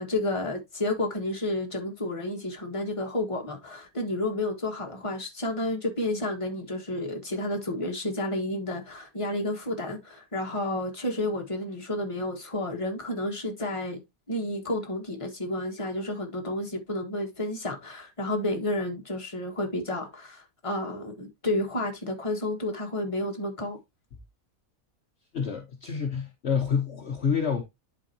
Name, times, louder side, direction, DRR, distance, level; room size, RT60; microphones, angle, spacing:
voice 1, 0.0-14.0 14.3-23.8, left 1 dB, 20° left, 1.7 m, -31 dB
voice 2, 25.3-27.6, left 6 dB, 50° left, 1.2 m, -28 dB
11.0 x 4.5 x 2.8 m
omnidirectional pair, 1.5 m